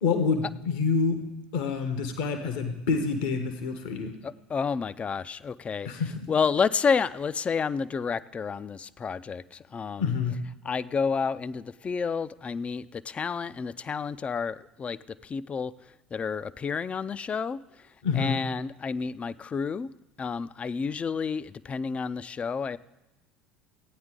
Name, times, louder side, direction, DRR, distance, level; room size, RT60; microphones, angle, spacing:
voice 1, 0.0-1.2 1.5-4.1 5.8-6.2 10.0-10.4 18.0-18.4, left 5 dB, 65° left, 7 dB, 1.1 m, -27 dB
voice 2, 4.2-10.3 10.6-15.7 16.1-19.9 20.2-22.8, left 5 dB, 25° left, 17 dB, 0.4 m, -30 dB
15.0 x 9.4 x 3.7 m, 1.0 s
figure-of-eight pair, 70°, 5 cm